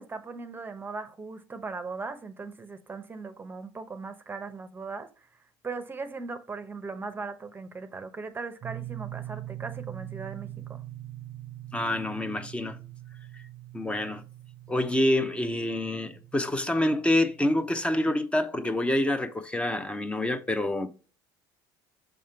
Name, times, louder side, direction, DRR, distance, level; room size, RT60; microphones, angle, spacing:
voice 1, 0.0-5.1 5.6-10.8, right 4 dB, 20° right, 0.8 m, -38 dB
sound 1, 8.6-18.2, right 14 dB, 45° right, 0.5 m, -43 dB
voice 2, 11.7-12.8 13.3-13.4 13.7-14.2 14.7-20.9, left 1 dB, 10° left, 0.8 m, -27 dB
6.5 x 3.6 x 4.4 m
supercardioid pair, 100°, 11 cm